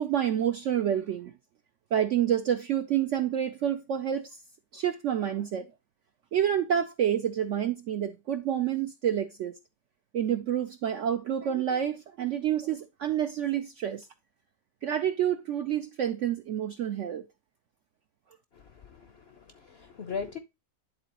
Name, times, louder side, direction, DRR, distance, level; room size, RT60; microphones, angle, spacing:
voice 1, 0.0-1.3 1.9-4.3 4.7-5.7 6.3-9.5 10.1-14.1 14.8-17.2, right 10 dB, 70° right, 0.7 m, -28 dB
voice 2, 18.5-20.4, left 5 dB, 55° left, 0.7 m, -39 dB
11.0 x 3.9 x 2.9 m
omnidirectional pair, 1.7 m